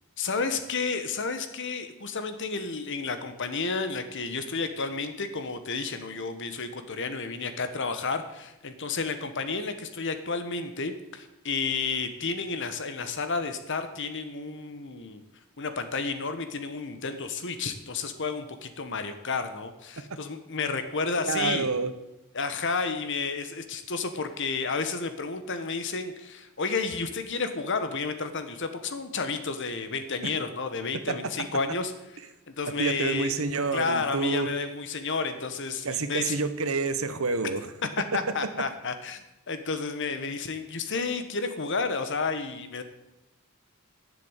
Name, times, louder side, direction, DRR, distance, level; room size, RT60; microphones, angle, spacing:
voice 1, 0.2-15.2 15.6-21.7 22.3-31.9 32.5-33.3 33.7-36.4 38.0-42.8, left 4 dB, 55° left, 9 dB, 1.3 m, -31 dB
voice 2, 21.2-21.9 31.1-31.2 32.8-34.5 35.8-37.7, right 4 dB, 70° right, 10 dB, 1.0 m, -28 dB
11.0 x 7.6 x 8.1 m, 0.95 s
head